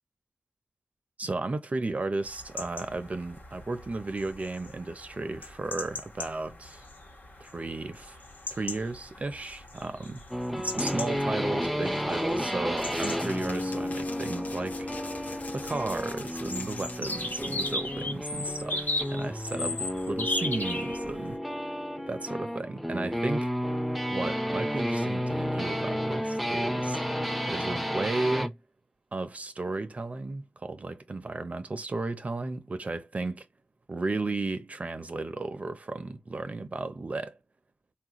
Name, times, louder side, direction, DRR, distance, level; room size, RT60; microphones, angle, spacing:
voice 1, 1.2-6.9 7.4-8.2 8.5-10.2 10.5-15.1 15.5-19.8 20.1-21.4 22.1-23.5 24.1-27.0 27.5-28.5 29.1-33.5 33.9-37.4, right 3 dB, 50° right, 0.6 m, -34 dB
sound 1, 2.2-21.4, left 2 dB, 75° left, 1.2 m, -38 dB
sound 2, 10.3-28.6, equal, ahead, 0.6 m, -32 dB
sound 3, 12.8-17.8, left 3 dB, 55° left, 0.6 m, -44 dB
4.3 x 2.5 x 2.9 m
wide cardioid pair, 75°, 3 cm